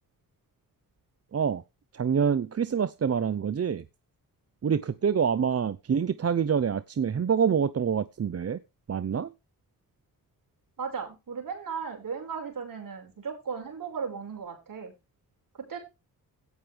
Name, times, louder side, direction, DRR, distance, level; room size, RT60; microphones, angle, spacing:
voice 1, 1.3-1.6 1.9-3.8 4.6-8.6 8.9-9.3, right 7 dB, 45° right, 14 dB, 0.7 m, -26 dB
voice 2, 10.8-14.9 15.5-15.8, right 6 dB, 70° right, 4 dB, 5.6 m, -36 dB
17.0 x 6.5 x 3.5 m, 0.25 s
cardioid pair, 75°, 35 cm